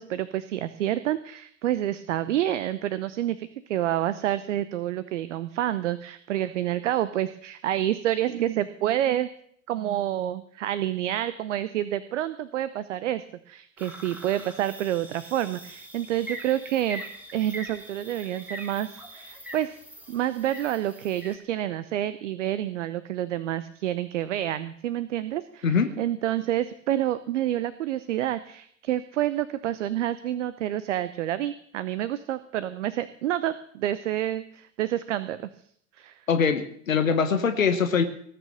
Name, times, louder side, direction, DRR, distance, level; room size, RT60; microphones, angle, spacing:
voice 1, 0.0-9.3 9.7-17.0 17.3-19.8 20.1-35.5 36.0-36.2, right 12 dB, 65° right, 14 dB, 0.9 m, -28 dB
sound 1, 13.8-21.4, equal, 5° right, 3.4 m, -43 dB
voice 2, 36.3-38.0, left 6 dB, 80° left, 9 dB, 1.2 m, -23 dB
18.5 x 6.9 x 7.3 m, 0.64 s
figure-of-eight pair, 85°, 39 cm